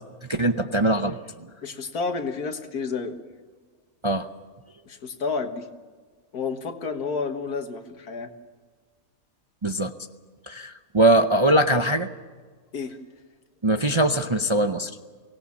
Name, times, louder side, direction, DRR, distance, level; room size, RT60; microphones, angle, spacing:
voice 1, 0.3-1.2 4.0-4.3 9.6-9.9 10.5-12.1 13.6-14.9, right 1 dB, 30° right, 7 dB, 0.5 m, -21 dB
voice 2, 1.6-3.2 4.9-5.7 6.3-8.3 12.7-13.0, left 4 dB, 85° left, 7 dB, 2.0 m, -30 dB
23.5 x 18.5 x 7.2 m, 1.5 s
omnidirectional pair, 1.6 m